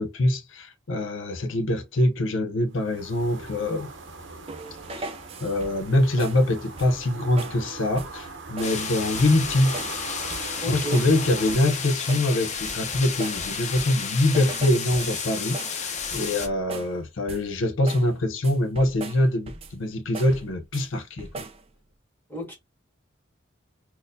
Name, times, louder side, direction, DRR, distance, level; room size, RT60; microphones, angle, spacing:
voice 1, 0.0-3.9 5.0-5.1 5.4-9.8 10.7-21.4, left 1 dB, 80° left, 0.6 m, -24 dB
sound 1, 2.7-11.6, right 3 dB, 65° right, 0.7 m, -40 dB
sound 2, 4.5-5.9 6.2-6.5 6.8-7.1 7.4-7.6 8.0-8.2 8.6-8.8 9.1-10.0 10.3-11.2 11.5-11.8 12.1-14.1 14.3-17.0 17.3-17.6 17.9-18.1 18.4-19.8 20.1-20.9 21.2-21.6, right 2 dB, 30° right, 0.4 m, -40 dB
sound 3, 8.6-16.5, left 6 dB, 35° left, 0.5 m, -32 dB
voice 2, 10.6-11.0 22.3-22.5, equal, 10° left, 1.5 m, -32 dB
4.1 x 2.1 x 2.6 m
head